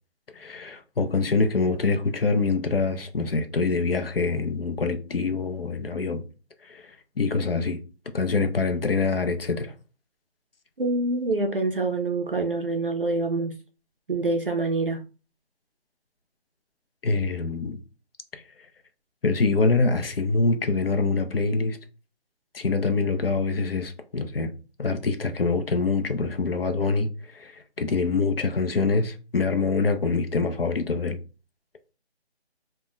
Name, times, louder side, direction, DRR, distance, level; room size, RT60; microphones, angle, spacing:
voice 1, 0.3-6.2 6.6-6.8 7.2-7.8 8.1-9.7 17.0-17.8 18.3-18.4 19.2-21.8 22.5-24.5 24.8-31.2, left 4 dB, 60° left, 0.5 m, -25 dB
voice 2, 10.8-13.6 14.1-15.0, right 2 dB, 55° right, 0.4 m, -26 dB
2.2 x 2.1 x 3.8 m
figure-of-eight pair, 180°, 33 cm